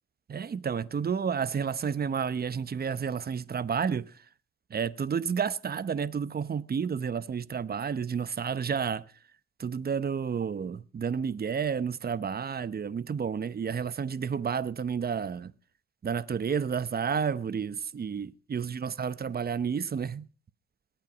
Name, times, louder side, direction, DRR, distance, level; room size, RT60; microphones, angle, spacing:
voice 1, 0.3-4.2 4.7-9.0 9.6-15.5 16.0-20.3, right 6 dB, 30° right, 0.8 m, -31 dB
21.0 x 9.0 x 5.1 m
cardioid pair, 90°, 30 cm